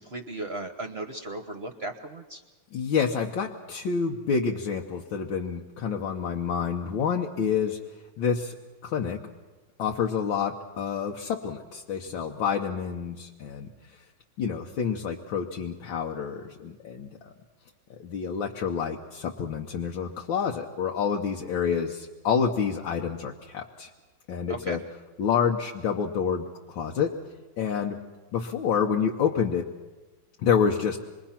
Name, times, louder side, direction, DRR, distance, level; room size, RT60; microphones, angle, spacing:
voice 1, 0.0-2.4 24.5-24.8, right 2 dB, 40° right, 5 dB, 1.0 m, -36 dB
voice 2, 2.7-7.8 8.2-8.5 8.8-9.2 9.8-13.7 14.4-17.3 17.9-23.9 24.3-24.8 25.2-27.2 27.6-28.0 28.3-29.7 30.4-31.0, left 6 dB, 80° left, 1 dB, 1.8 m, -28 dB
26.5 x 22.0 x 5.8 m, 1.2 s
omnidirectional pair, 2.1 m